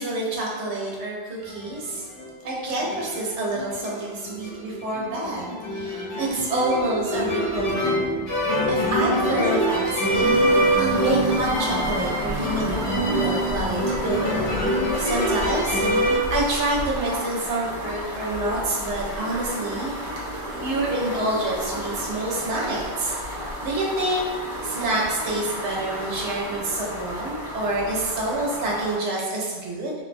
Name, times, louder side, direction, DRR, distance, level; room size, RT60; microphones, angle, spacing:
voice 1, 0.0-2.1 2.4-8.2 8.7-19.9 20.6-23.1 23.6-24.3 24.6-29.9, right 2 dB, 85° right, -3 dB, 0.9 m, -27 dB
sound 1, 1.5-2.3 2.6-16.2, equal, 60° left, 1.1 m, -25 dB
sound 2, 10.1-29.0, equal, 55° right, 0.9 m, -33 dB
2.6 x 2.1 x 2.5 m, 1.4 s
omnidirectional pair, 1.1 m